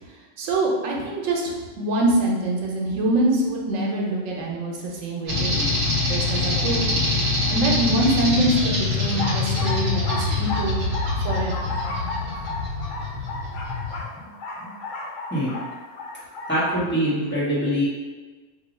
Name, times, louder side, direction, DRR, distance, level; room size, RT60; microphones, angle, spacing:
voice 1, 0.4-5.7 6.1-7.0 7.5-10.8 11.2-11.7, right 1 dB, 85° right, -1 dB, 1.1 m, -24 dB
sound 1, 5.3-14.0, left 2 dB, 55° right, 1.0 m, -25 dB
sound 2, 9.0-16.7, left 2 dB, 85° left, 1.0 m, -34 dB
voice 2, 16.5-17.8, equal, 10° left, -10 dB, 1.0 m, -23 dB
2.7 x 2.2 x 4.1 m, 1.3 s
omnidirectional pair, 1.3 m